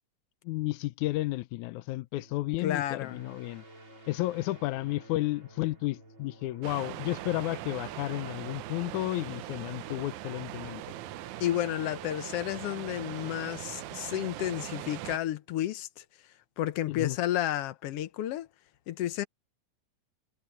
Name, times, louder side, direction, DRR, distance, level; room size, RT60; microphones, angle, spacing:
voice 1, 0.5-3.6 4.1-10.8 16.9-17.2, left 18 dB, 85° left, 2.1 m, -32 dB
sound 1, 2.1-15.5, right 1 dB, 40° right, 6.0 m, -53 dB
voice 2, 2.6-3.2 11.4-16.0 16.6-18.5 18.9-19.3, left 12 dB, 65° left, 1.6 m, -31 dB
sound 2, 6.6-15.2, right 17 dB, 85° right, 2.1 m, -41 dB
omnidirectional pair, 3.4 m